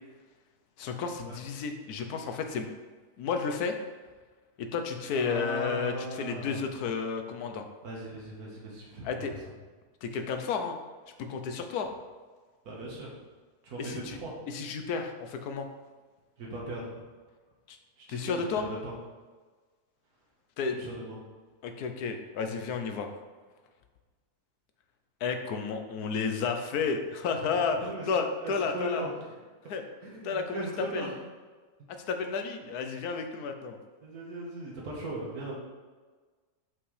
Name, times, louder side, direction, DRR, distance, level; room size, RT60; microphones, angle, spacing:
voice 1, 0.8-2.7 3.2-3.7 4.6-7.7 9.0-9.3 10.0-10.8 11.3-11.9 13.8-14.2 14.5-15.7 17.7-17.8 18.1-18.6 20.6-20.8 21.6-23.1 25.2-29.1 29.7-29.8 30.2-30.6 30.9-31.1 32.1-33.8, left 5 dB, 85° left, 6 dB, 1.3 m, -32 dB
voice 2, 5.1-6.6 7.8-9.3 12.7-13.1 13.6-14.3 16.4-17.0 18.0-18.9 20.7-21.2 27.8-28.0 28.4-29.1 30.0-31.1 31.8-31.9 34.0-35.6, right 1 dB, 75° right, -4 dB, 1.9 m, -38 dB
7.4 x 5.8 x 3.3 m, 1.4 s
omnidirectional pair, 1.6 m